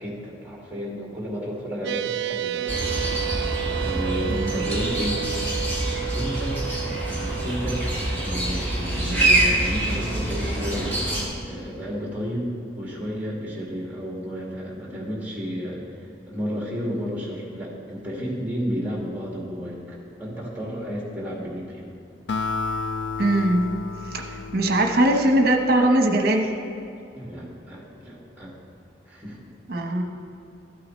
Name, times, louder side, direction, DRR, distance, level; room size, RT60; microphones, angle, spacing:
voice 1, 0.0-2.9 3.4-5.2 6.1-6.6 7.1-7.9 8.2-11.0 11.4-15.8 16.3-21.9 27.1-28.5 29.1-29.4, equal, 10° right, -4 dB, 2.0 m, -32 dB
sound 1, 1.8-10.5, right 14 dB, 70° right, 0.3 m, -33 dB
sound 2, 2.7-11.2, right 1 dB, 10° left, 2.2 m, -25 dB
Acoustic guitar, 22.3-25.9, left 4 dB, 80° left, 0.5 m, -31 dB
voice 2, 23.2-23.8 24.1-26.5 29.7-30.0, right 1 dB, 55° right, 3 dB, 1.0 m, -21 dB
13.5 x 8.6 x 3.1 m, 2.7 s
head